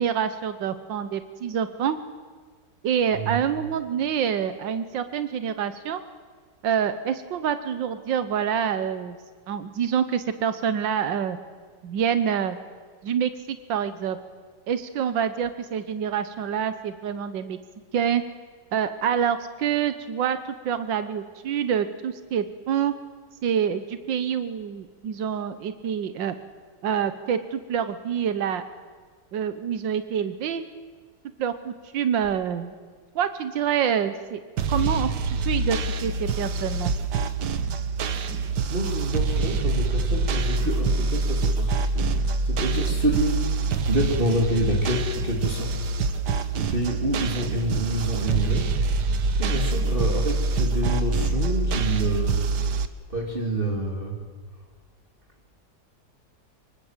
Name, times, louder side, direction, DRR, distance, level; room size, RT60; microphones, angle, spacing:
voice 1, 0.0-2.0 2.8-6.0 6.6-9.2 9.5-11.4 11.8-12.6 13.0-14.2 14.7-17.6 17.9-18.2 18.7-20.4 20.7-22.9 23.4-26.4 26.8-28.6 29.3-30.6 31.4-32.7 33.2-34.4 34.7-36.9, right 8 dB, 90° right, 11 dB, 1.8 m, -26 dB
sound 1, 34.6-52.9, right 3 dB, 70° right, 1.7 m, -25 dB
voice 2, 38.7-48.8 49.4-52.4 53.1-54.2, right 1 dB, 30° right, 0 dB, 2.8 m, -28 dB
25.5 x 23.5 x 7.4 m, 1.6 s
omnidirectional pair, 1.9 m